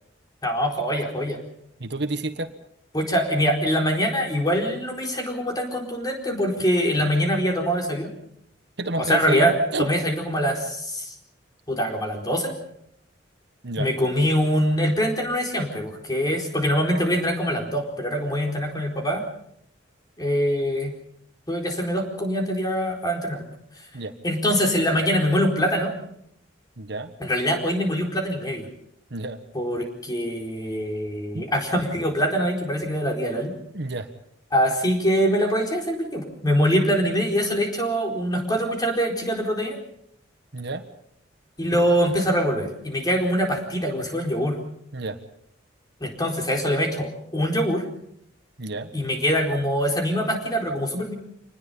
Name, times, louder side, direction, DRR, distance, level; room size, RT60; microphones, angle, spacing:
voice 1, 0.4-1.4 2.9-8.1 9.0-11.1 11.7-12.6 13.8-19.3 20.2-20.9 21.5-23.4 24.2-25.9 27.2-28.7 29.5-33.5 34.5-39.8 41.6-44.6 46.0-47.9 48.9-51.1, equal, 20° left, 2 dB, 4.3 m, -24 dB
voice 2, 1.8-2.5 8.8-9.9 13.6-13.9 23.9-24.1 26.8-27.1 29.1-29.4 31.3-31.4 33.7-34.1 40.5-40.9 44.9-45.2 48.6-48.9, right 2 dB, 60° right, 9 dB, 1.4 m, -30 dB
25.5 x 20.0 x 5.6 m, 0.71 s
head